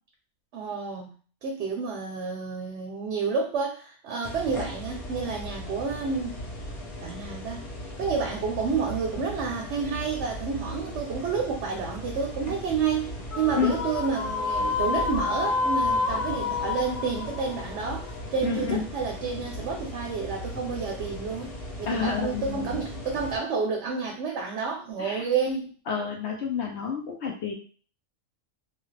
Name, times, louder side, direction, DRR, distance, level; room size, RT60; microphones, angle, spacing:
voice 1, 0.5-1.1 1.4-6.4 7.0-7.7 8.0-25.7, right 5 dB, 65° right, 1 dB, 0.8 m, -30 dB
sound 1, 4.2-23.4, left 1 dB, 40° left, 0.5 m, -38 dB
sound 2, 13.3-18.7, left 4 dB, 85° left, 1.1 m, -29 dB
voice 2, 18.4-18.8 21.9-22.8 25.0-25.3 25.9-27.5, left 6 dB, 65° left, 1 dB, 0.8 m, -29 dB
2.9 x 2.4 x 3.1 m, 0.40 s
omnidirectional pair, 1.3 m